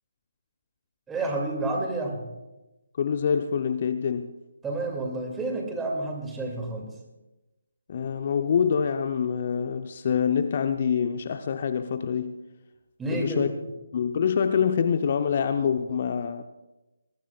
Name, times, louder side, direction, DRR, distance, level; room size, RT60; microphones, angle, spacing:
voice 1, 1.1-2.2 4.6-6.9 13.0-13.5, right 2 dB, 5° right, 1 dB, 2.4 m, -30 dB
voice 2, 3.0-4.4 7.9-12.4 13.1-13.5 13.9-16.4, left 7 dB, 40° left, 8 dB, 0.7 m, -25 dB
22.0 x 19.5 x 2.4 m, 1.0 s
figure-of-eight pair, 150°, 0 cm